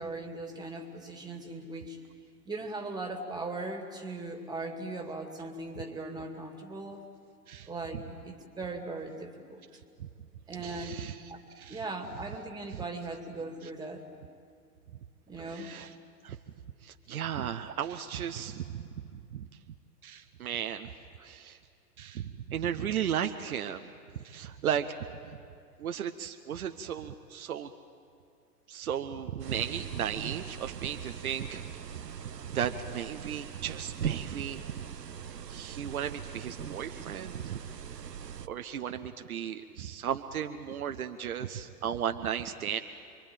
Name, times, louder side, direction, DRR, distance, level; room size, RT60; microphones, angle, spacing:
voice 1, 0.0-2.0 2.5-7.0 7.7-9.6 10.5-11.0 11.3-11.4 11.7-14.1 15.3-15.7, right 2 dB, 10° right, 4 dB, 2.4 m, -39 dB
voice 2, 10.6-11.2 11.6-11.8 12.7-12.8 15.5-15.9 16.2-16.4 16.8-18.8 19.1-19.5 20.0-20.9 21.2-21.6 22.0-23.9 24.2-25.0 25.8-27.7 28.7-32.0 32.5-34.6 35.5-37.6 38.4-42.8, right 9 dB, 60° right, 7 dB, 1.1 m, -35 dB
sound 1, 29.4-38.5, right 8 dB, 85° right, 0.7 m, -41 dB
26.5 x 23.5 x 9.0 m, 2.4 s
figure-of-eight pair, 105°, 48 cm